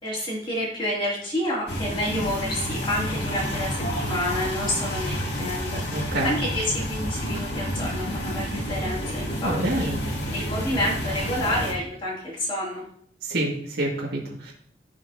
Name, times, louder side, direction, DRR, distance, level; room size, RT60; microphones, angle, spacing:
voice 1, 0.0-9.9 10.3-12.8, left 1 dB, 25° left, -8 dB, 2.8 m, -29 dB
sound 1, 1.7-11.7, equal, 70° left, 2.1 m, -29 dB
voice 2, 5.9-6.3 9.4-10.0 13.2-14.5, right 1 dB, 60° right, -5 dB, 2.0 m, -27 dB
15.5 x 5.6 x 2.8 m, 0.64 s
head